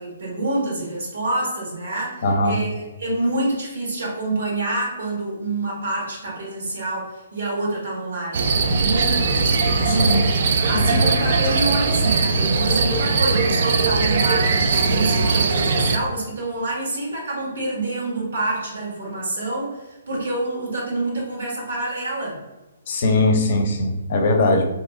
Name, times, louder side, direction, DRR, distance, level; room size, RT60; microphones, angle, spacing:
voice 1, 0.0-10.3 10.7-22.4, right 2 dB, 70° right, -3 dB, 1.4 m, -27 dB
voice 2, 2.2-2.6 9.9-10.3 10.7-11.0 22.9-24.7, left 2 dB, 50° left, 4 dB, 0.5 m, -20 dB
sound 1, 8.3-16.0, right 4 dB, 55° right, 0.3 m, -20 dB
2.8 x 2.0 x 3.5 m, 1.1 s
hypercardioid pair, 140°, 0 cm